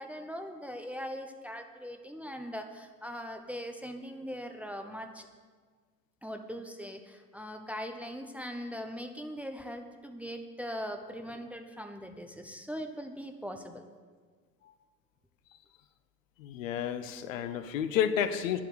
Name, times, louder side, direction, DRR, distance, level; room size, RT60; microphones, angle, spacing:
voice 1, 0.0-5.3 6.2-13.8, equal, 5° right, 5 dB, 0.7 m, -40 dB
voice 2, 16.4-18.6, left 9 dB, 60° left, 12 dB, 0.9 m, -30 dB
10.5 x 7.4 x 8.0 m, 1.5 s
figure-of-eight pair, 80°, 45 cm